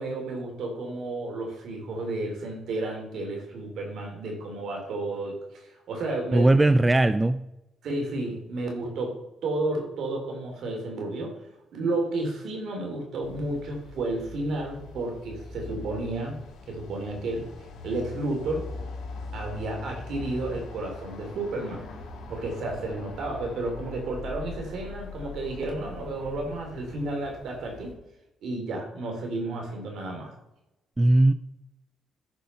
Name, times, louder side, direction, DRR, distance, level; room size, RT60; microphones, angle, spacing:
voice 1, 0.0-6.6 7.8-11.4 11.7-16.4 16.7-17.5 17.8-18.7 19.3-21.9 22.3-27.9 28.4-30.3, right 2 dB, 70° right, 1 dB, 3.6 m, -32 dB
voice 2, 6.3-7.5 31.0-31.3, right 2 dB, 15° right, 14 dB, 0.4 m, -19 dB
sound 1, 13.2-27.9, left 3 dB, 85° left, 2.7 m, -42 dB
13.5 x 5.3 x 5.7 m, 0.92 s
cardioid pair, 90°, 0 cm